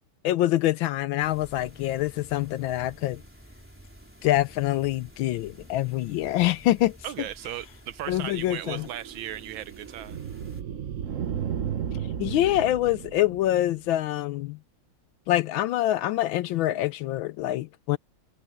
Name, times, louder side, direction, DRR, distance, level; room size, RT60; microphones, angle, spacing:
voice 1, 0.2-3.2 4.2-7.0 8.1-8.9 12.2-14.6 15.3-18.0, left 14 dB, 75° left, 1.3 m, -25 dB
sound 1, 1.2-10.6, equal, 5° right, 3.8 m, -50 dB
voice 2, 7.0-10.2, right 12 dB, 70° right, 1.3 m, -36 dB
sound 2, 8.3-13.9, right 8 dB, 50° right, 1.0 m, -34 dB
omnidirectional pair, 2.4 m